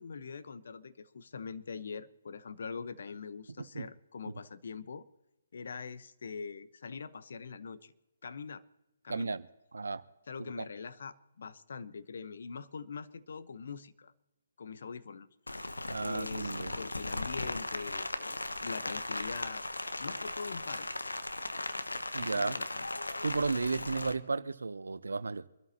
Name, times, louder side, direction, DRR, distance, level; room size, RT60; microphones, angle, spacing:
voice 1, 0.0-5.0 5.5-7.9 8.2-8.6 9.0-9.4 10.3-14.1 14.6-15.3 16.0-19.6 20.0-21.1 22.2-22.8, left 5 dB, 60° left, 1.0 m, -43 dB
voice 2, 9.1-9.5 9.7-10.0 10.6-10.7 15.9-16.7 22.1-22.6 23.2-25.5, right 4 dB, 75° right, 0.8 m, -33 dB
Rain, 15.5-24.1, left 2 dB, 90° left, 1.0 m, -37 dB
25.0 x 13.0 x 2.9 m
figure-of-eight pair, 140°, 0 cm